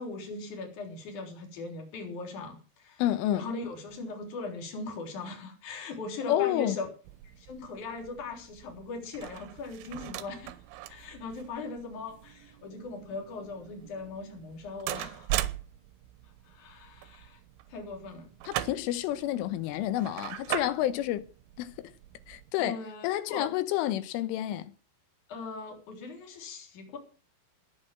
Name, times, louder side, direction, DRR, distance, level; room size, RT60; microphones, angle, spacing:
voice 1, 0.0-3.0 3.3-6.9 7.2-10.5 10.9-15.3 16.5-17.4 17.7-18.3 22.6-23.5 25.3-27.0, left 3 dB, 40° left, 4.7 m, -40 dB
voice 2, 3.0-3.5 6.3-6.8 18.5-21.2 21.6-21.9 22.3-22.8 23.0-24.7, left 13 dB, 80° left, 3.4 m, -29 dB
sound 1, 7.0-22.5, right 14 dB, 85° right, 3.5 m, -40 dB
19.5 x 6.6 x 7.7 m
omnidirectional pair, 5.7 m